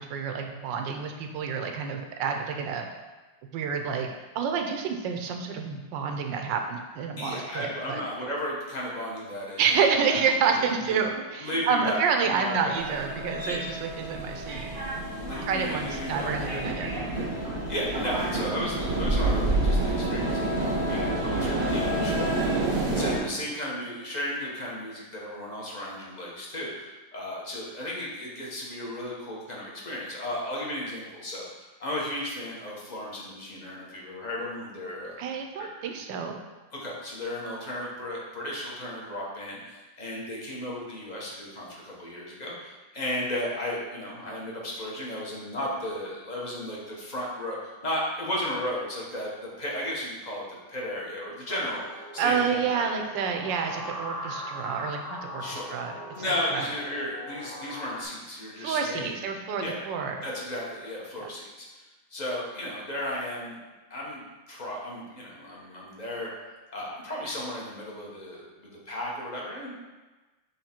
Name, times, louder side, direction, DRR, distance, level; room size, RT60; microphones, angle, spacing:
voice 1, 0.0-2.9 3.5-8.0 9.6-14.8 15.5-17.0 21.9-22.2 35.2-36.4 52.2-55.9 56.5-56.7 58.6-60.2, right 6 dB, 75° right, 4 dB, 1.3 m, -29 dB
voice 2, 7.2-9.7 10.0-10.2 10.5-11.0 11.4-12.8 13.4-13.6 15.2-35.2 35.6-35.7 36.7-53.0 55.4-55.7 56.1-59.2 59.6-59.8 60.2-61.8 62.1-63.6 63.9-69.7, left 1 dB, 35° left, -4 dB, 0.8 m, -35 dB
sound 1, 12.7-23.2, right 2 dB, 35° right, 0.9 m, -28 dB
sound 2, 51.5-58.0, left 1 dB, 65° left, 0.5 m, -40 dB
7.2 x 3.1 x 4.3 m, 1.2 s
omnidirectional pair, 2.1 m